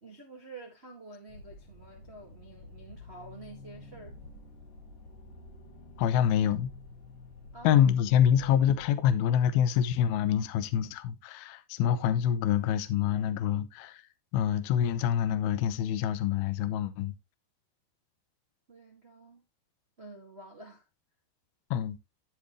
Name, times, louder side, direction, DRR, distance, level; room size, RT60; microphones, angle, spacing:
voice 1, 0.0-4.2 7.5-7.8 8.4-8.7 18.7-19.4 20.0-20.9, right 3 dB, 75° right, 0.5 m, -49 dB
sound 1, 1.3-8.9, left 2 dB, 55° left, 3.2 m, -49 dB
voice 2, 6.0-6.7 7.6-14.0 14.3-17.1 21.7-22.0, left 9 dB, 75° left, 2.4 m, -26 dB
14.5 x 5.0 x 3.2 m
omnidirectional pair, 5.0 m